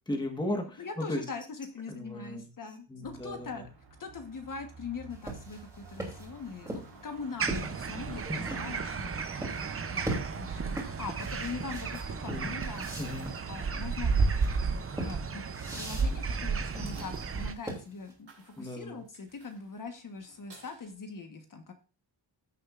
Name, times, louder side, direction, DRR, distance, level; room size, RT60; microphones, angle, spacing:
voice 1, 0.1-1.2 1.9-2.5 2.9-3.6 8.3-8.5 12.2-12.5 13.0-13.3 18.6-19.0, left 1 dB, 10° left, 3 dB, 1.3 m, -36 dB
voice 2, 0.8-3.7 4.0-12.9 13.4-14.2 14.9-15.4 15.7-21.7, left 4 dB, 45° left, 5 dB, 1.2 m, -42 dB
sound 1, 3.0-20.9, right 4 dB, 60° right, 3.8 m, -53 dB
sound 2, 5.1-8.7 9.4-9.7 10.0-18.1, right 1 dB, 5° right, 2.8 m, -40 dB
sound 3, 7.4-17.5, right 5 dB, 30° right, 0.6 m, -33 dB
15.0 x 6.6 x 2.4 m, 0.33 s
wide cardioid pair, 175°, 46 cm